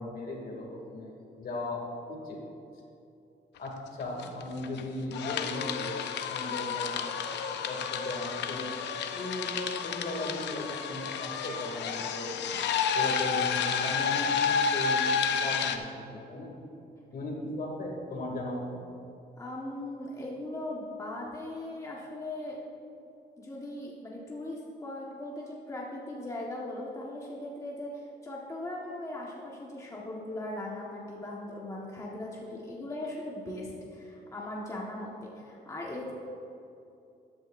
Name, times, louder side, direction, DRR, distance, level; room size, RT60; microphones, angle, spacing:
voice 1, 0.0-1.8 2.1-2.4 3.6-8.7 9.1-9.5 9.8-12.3 12.9-14.4 14.7-15.1 15.4-16.5 17.1-18.8, left 1 dB, 60° left, -1 dB, 2.5 m, -37 dB
sound 1, 3.6-3.7 4.0-4.8 5.1-15.8, left 6 dB, 85° left, 0.7 m, -30 dB
voice 2, 19.4-22.6 23.4-36.1, left 1 dB, 20° left, -4 dB, 1.3 m, -39 dB
14.0 x 10.5 x 2.6 m, 2.7 s
cardioid pair, 115°, 18 cm